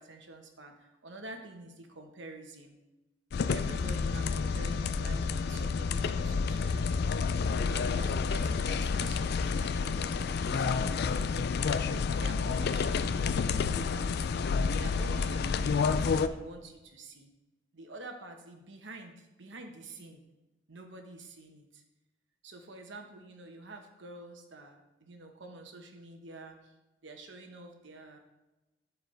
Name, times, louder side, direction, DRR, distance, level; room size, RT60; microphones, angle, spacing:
voice 1, 0.0-2.8 3.5-7.2 7.7-10.1 10.4-11.6 12.1-14.3 14.8-17.3 17.7-20.2 20.7-21.8 22.4-26.7 27.0-28.2, right 2 dB, 65° right, 4 dB, 1.1 m, -48 dB
sound 1, 3.3-16.3, left 5 dB, 55° left, 0.4 m, -29 dB
13.0 x 4.7 x 3.3 m, 1.0 s
head